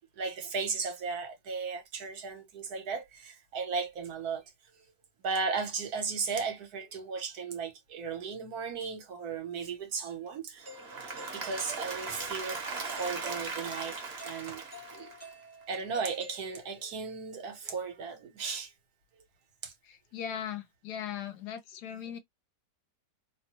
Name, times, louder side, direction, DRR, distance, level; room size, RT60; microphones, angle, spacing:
voice 1, 0.2-4.4 5.2-10.7 11.3-14.6 14.9-15.1 15.7-18.7 19.6-19.7, right 5 dB, 65° right, 1.4 m, -35 dB
Doorbell, 10.6-17.0, right 1 dB, 10° right, 0.8 m, -50 dB
Applause / Crowd, 10.6-15.6, right 4 dB, 45° right, 1.1 m, -39 dB
voice 2, 19.8-22.2, left 9 dB, 75° left, 1.2 m, -39 dB
3.0 x 2.1 x 2.9 m
omnidirectional pair, 1.8 m